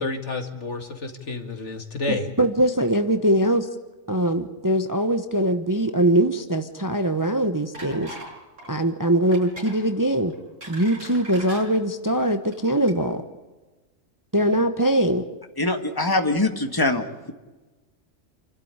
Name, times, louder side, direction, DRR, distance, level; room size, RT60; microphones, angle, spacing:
voice 1, 0.0-2.4, left 2 dB, 60° left, 6 dB, 2.4 m, -30 dB
voice 2, 2.1-3.7 4.1-8.1 8.7-10.3 10.7-13.2 14.3-15.2, right 1 dB, 15° right, 8 dB, 1.0 m, -22 dB
sound 1, 7.7-8.3 8.6-8.8 9.3-9.8 10.3-11.6 12.4-12.6 12.9-13.0, right 1 dB, 70° right, 6.7 m, -40 dB
voice 3, 15.6-17.3, left 2 dB, 15° left, 6 dB, 1.9 m, -23 dB
28.5 x 12.5 x 9.8 m, 1.2 s
omnidirectional pair, 1.4 m